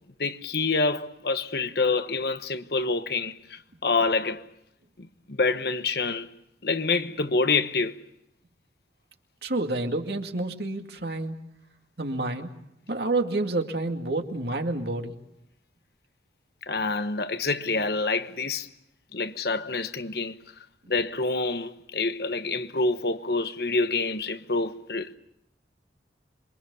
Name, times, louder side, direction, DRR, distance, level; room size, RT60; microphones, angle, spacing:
voice 1, 0.2-4.5 5.0-6.3 6.6-8.0 16.7-18.7 19.1-20.4 20.9-25.1, left 3 dB, 60° left, 1.1 m, -27 dB
voice 2, 9.4-11.4 12.0-12.5 12.9-15.1, right 2 dB, 65° right, 2.3 m, -29 dB
27.5 x 23.5 x 7.0 m
head